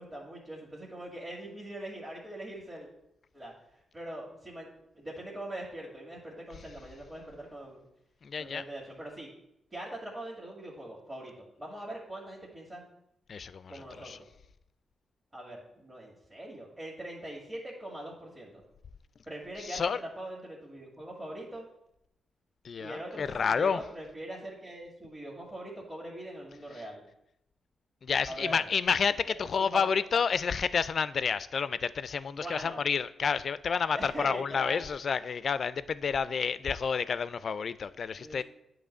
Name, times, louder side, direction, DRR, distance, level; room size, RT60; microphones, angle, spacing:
voice 1, 0.0-2.9 3.3-3.5 3.9-4.7 5.0-7.9 8.4-9.3 9.7-12.8 13.7-14.1 15.3-18.6 19.3-21.7 22.8-27.0 28.3-28.7 29.1-30.0 32.3-32.8 33.9-34.9 36.1-36.3 38.2-38.4, right 1 dB, 25° right, 1.9 m, -42 dB
voice 2, 8.2-8.6 13.3-14.2 19.7-20.0 22.6-23.8 28.0-38.4, left 6 dB, 60° left, 0.3 m, -30 dB
8.6 x 3.0 x 6.4 m
cardioid pair, 60°, 0 cm